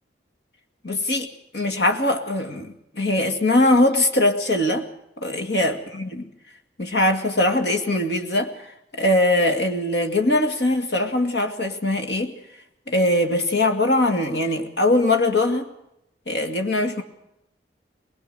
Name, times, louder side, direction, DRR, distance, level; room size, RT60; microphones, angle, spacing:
voice 1, 0.8-1.3 1.5-4.9 5.2-6.3 6.8-8.5 8.9-12.3 12.9-15.7 16.3-17.0, left 1 dB, 70° left, 5 dB, 2.2 m, -21 dB
21.5 x 21.0 x 6.8 m, 0.84 s
head